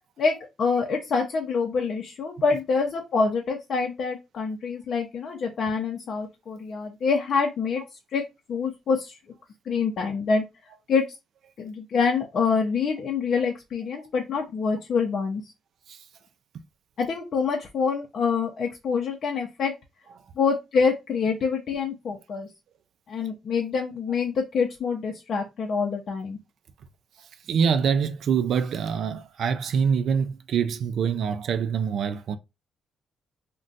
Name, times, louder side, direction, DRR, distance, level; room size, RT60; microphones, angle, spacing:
voice 1, 0.2-7.8 8.1-8.2 8.5-9.2 9.7-10.4 10.9-11.1 11.6-15.4 17.0-19.7 20.4-22.5 23.1-26.4, left 5 dB, 60° left, 0.6 m, -26 dB
voice 2, 27.2-32.4, right 6 dB, 65° right, 0.3 m, -25 dB
2.4 x 2.2 x 3.8 m
cardioid pair, 90°, 0 cm